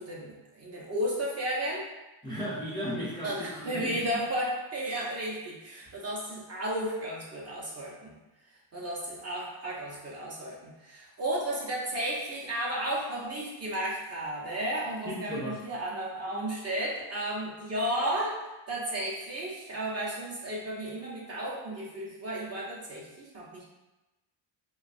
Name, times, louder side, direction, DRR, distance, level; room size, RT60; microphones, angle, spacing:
voice 1, 0.0-1.9 3.2-8.2 8.7-18.4 18.7-23.6, right 1 dB, 30° right, -5 dB, 0.6 m, -33 dB
voice 2, 2.2-4.0 15.1-15.6, equal, 10° left, -8 dB, 0.5 m, -35 dB
3.0 x 2.3 x 2.5 m, 1.0 s
cardioid pair, 125°, 48 cm